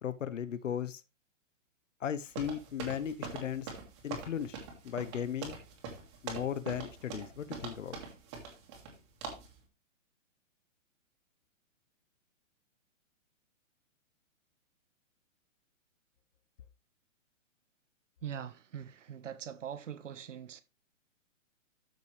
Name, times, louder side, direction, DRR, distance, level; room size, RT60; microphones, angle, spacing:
voice 1, 0.0-1.0 2.0-3.7 4.0-4.6 4.8-5.6 6.2-8.0, left 9 dB, 70° left, 1.1 m, -36 dB
sound 1, 2.3-8.9 9.2-9.5, right 5 dB, 20° right, 2.1 m, -43 dB
voice 2, 18.2-20.6, right 9 dB, 65° right, 1.5 m, -42 dB
13.0 x 5.7 x 3.3 m
hypercardioid pair, 175°, 39 cm